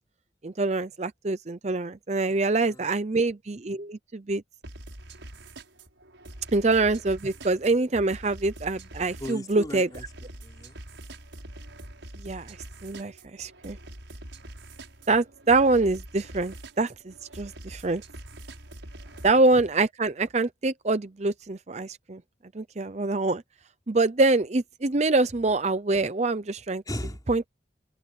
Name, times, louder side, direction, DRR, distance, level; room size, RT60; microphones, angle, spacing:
voice 1, 0.4-4.4 6.5-9.9 12.2-12.6 12.8-13.8 15.1-18.0 19.2-22.2 22.5-23.4 23.9-26.8 27.3-27.5, right 3 dB, 35° right, 0.6 m, -25 dB
voice 2, 2.3-3.0 9.1-10.8 19.1-19.2 26.9-27.2, equal, 20° left, 4.4 m, -38 dB
sound 1, 4.6-19.4, right 1 dB, 80° right, 6.6 m, -44 dB
open air
head